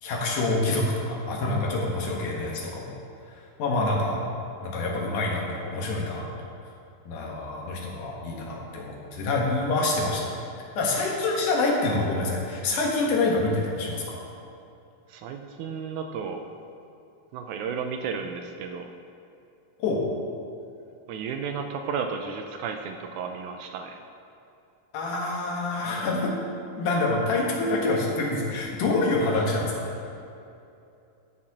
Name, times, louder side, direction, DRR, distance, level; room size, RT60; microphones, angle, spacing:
voice 1, 0.0-3.0 3.3-4.3 4.6-6.5 7.0-10.4 10.8-14.2 19.8-20.0 24.9-26.4 26.8-30.0, left 2 dB, 80° left, -2 dB, 2.8 m, -26 dB
voice 2, 15.1-16.5 17.3-18.9 21.1-24.0, right 6 dB, 80° right, 5 dB, 2.0 m, -33 dB
14.5 x 6.5 x 2.9 m, 2.6 s
omnidirectional pair, 3.6 m